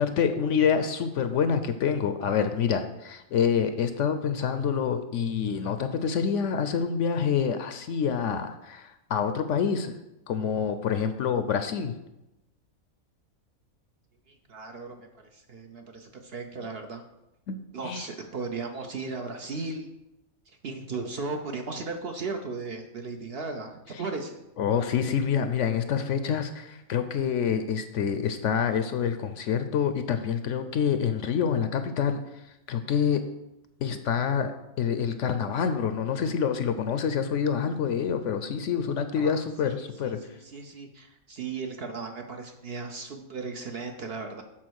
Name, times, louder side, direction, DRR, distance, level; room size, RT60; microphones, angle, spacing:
voice 1, 0.0-10.0 10.3-11.9 17.5-18.1 24.6-32.4 32.7-33.2 33.8-34.5 34.8-40.2, left 7 dB, 65° left, 9 dB, 0.8 m, -27 dB
voice 2, 14.3-17.0 17.7-19.9 20.5-24.4 39.2-44.4, right 4 dB, 55° right, 4 dB, 0.8 m, -36 dB
7.6 x 4.1 x 6.3 m, 0.92 s
omnidirectional pair, 1.5 m